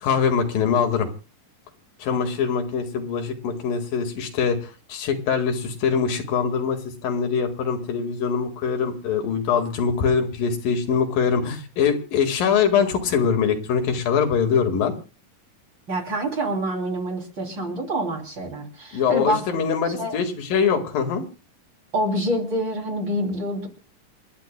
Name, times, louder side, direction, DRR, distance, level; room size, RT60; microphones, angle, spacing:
voice 1, 0.0-1.1 2.0-14.9 18.9-21.3, left 6 dB, 85° left, 5 dB, 3.6 m, -23 dB
voice 2, 15.9-19.5 19.9-20.2 21.9-23.7, right 1 dB, 35° right, 2 dB, 3.4 m, -26 dB
28.0 x 13.0 x 2.2 m, 0.35 s
omnidirectional pair, 3.9 m